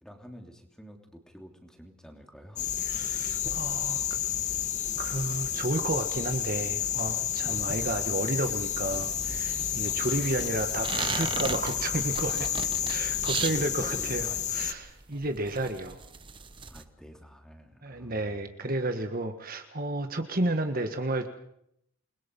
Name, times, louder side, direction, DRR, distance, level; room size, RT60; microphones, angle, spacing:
voice 1, 0.0-2.7 7.4-7.7 9.8-10.4 12.1-12.8 13.4-14.7 16.7-18.4, equal, 5° left, 3 dB, 3.1 m, -49 dB
sound 1, 2.6-14.7, left 9 dB, 35° left, 1.3 m, -31 dB
voice 2, 2.9-4.0 5.0-12.5 12.9-16.0 17.8-21.3, right 2 dB, 40° right, 6 dB, 1.6 m, -32 dB
sound 2, 3.4-16.8, right 5 dB, 25° right, 1.0 m, -39 dB
28.5 x 21.5 x 5.5 m, 0.73 s
head